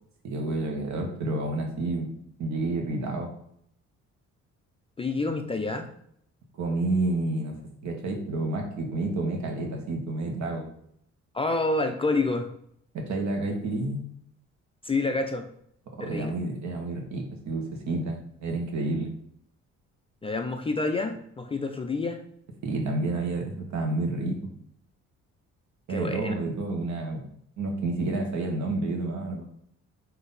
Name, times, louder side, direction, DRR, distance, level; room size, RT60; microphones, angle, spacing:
voice 1, 0.2-2.1 2.4-3.3 6.6-10.7 12.9-14.0 16.0-19.1 22.6-24.5 25.9-27.2 27.6-29.5, right 2 dB, 65° right, 2 dB, 1.1 m, -29 dB
voice 2, 5.0-5.9 11.3-12.5 14.8-15.5 16.0-16.3 20.2-22.2 25.9-26.3, left 3 dB, 20° left, 5 dB, 0.3 m, -28 dB
3.7 x 2.7 x 3.9 m, 0.69 s
cardioid pair, 90°, 30 cm